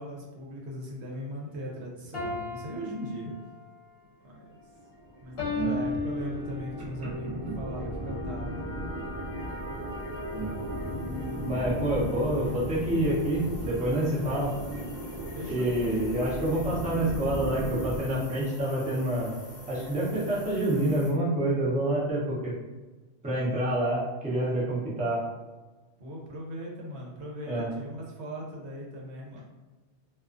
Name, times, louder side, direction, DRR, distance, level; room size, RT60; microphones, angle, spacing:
voice 1, 0.0-3.3 4.2-4.6 5.2-8.9 15.3-16.4 26.0-29.4, equal, 80° right, -2 dB, 0.9 m, -39 dB
sound 1, 2.1-3.7 5.4-6.9, left 4 dB, 65° left, 0.8 m, -34 dB
sound 2, 4.5-18.0, equal, 45° right, 0.8 m, -36 dB
sound 3, 8.9-21.1, left 2 dB, 35° left, 0.9 m, -48 dB
voice 2, 10.3-10.7 11.4-14.5 15.5-19.3 19.7-22.5 23.2-25.2 27.5-27.7, right 1 dB, 10° right, -7 dB, 0.4 m, -27 dB
2.3 x 2.3 x 2.4 m, 1.2 s
omnidirectional pair, 1.1 m